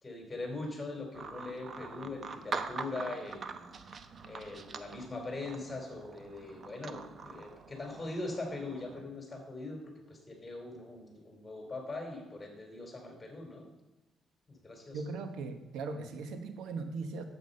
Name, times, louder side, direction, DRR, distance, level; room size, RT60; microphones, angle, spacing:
voice 1, 0.0-3.6 4.2-13.6 14.5-15.0, left 2 dB, 20° left, 1 dB, 3.7 m, -41 dB
sound 1, 1.1-9.0, right 4 dB, 50° right, 0.8 m, -44 dB
voice 2, 14.9-17.2, right 4 dB, 85° right, 7 dB, 1.0 m, -39 dB
9.4 x 8.1 x 5.4 m, 1.0 s
cardioid pair, 90°, 0 cm